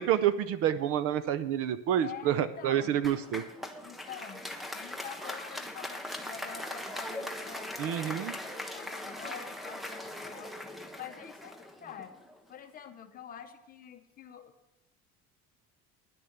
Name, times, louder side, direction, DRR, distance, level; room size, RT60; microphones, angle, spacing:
voice 1, 0.0-3.4 7.8-8.3, right 10 dB, 45° right, 14 dB, 0.5 m, -28 dB
voice 2, 2.0-3.0 3.8-4.4 4.7-10.6 11.0-12.2 12.5-14.5, left 8 dB, 25° left, 7 dB, 0.8 m, -47 dB
Applause, 3.0-12.4, left 1 dB, ahead, 0.5 m, -40 dB
10.5 x 6.7 x 8.0 m, 0.89 s
cardioid pair, 180°, 32 cm